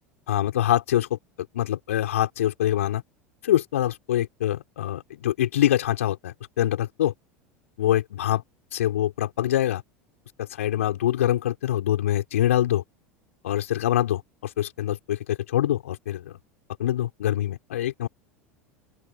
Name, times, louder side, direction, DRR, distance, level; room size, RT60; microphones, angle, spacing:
voice 1, 0.3-1.2 1.5-3.0 3.4-7.1 7.8-8.4 8.7-9.8 10.4-12.8 13.4-16.3 16.8-18.1, left 12 dB, 70° left, 6.0 m, -24 dB
open air
figure-of-eight pair, 75°, 8 cm